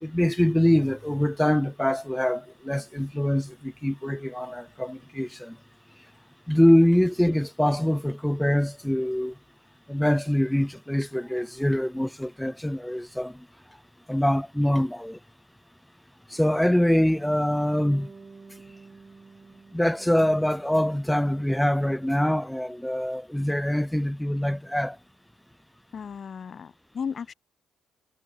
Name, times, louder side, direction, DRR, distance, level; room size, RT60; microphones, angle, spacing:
voice 1, 0.0-5.6 6.5-9.3 9.9-13.4 14.1-15.2 16.3-18.1 19.7-25.0, left 1 dB, 5° left, 0.9 m, -24 dB
Bass guitar, 17.8-21.9, right 4 dB, 30° right, 2.2 m, -51 dB
voice 2, 25.9-27.3, left 6 dB, 50° left, 0.5 m, -35 dB
cardioid pair, 90°, 0 cm